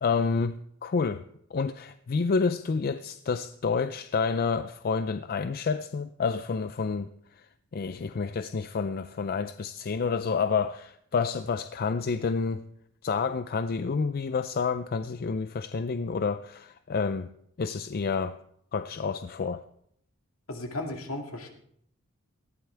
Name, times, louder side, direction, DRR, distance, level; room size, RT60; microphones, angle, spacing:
voice 1, 0.0-1.3 1.5-7.1 7.4-7.5 7.7-12.7 13.0-17.3 17.6-18.4 18.7-19.6, left 5 dB, 45° left, 0.4 m, -29 dB
voice 2, 20.5-21.5, left 1 dB, 70° left, 2.3 m, -35 dB
19.0 x 15.0 x 3.4 m
head